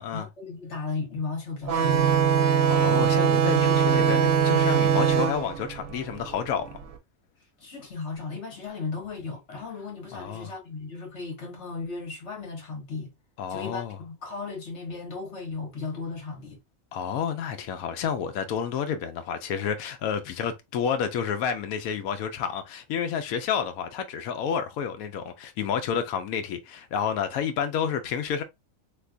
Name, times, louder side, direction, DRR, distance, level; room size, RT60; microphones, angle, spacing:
voice 1, 0.0-2.2 7.6-13.1 13.5-16.6, left 4 dB, 55° left, 1.7 m, -36 dB
sound 1, 1.7-6.8, right 8 dB, 70° right, 1.0 m, -22 dB
voice 2, 2.7-6.7 10.1-10.5 13.4-14.0 16.9-28.4, left 7 dB, 85° left, 1.0 m, -30 dB
3.3 x 2.9 x 2.4 m
omnidirectional pair, 1.5 m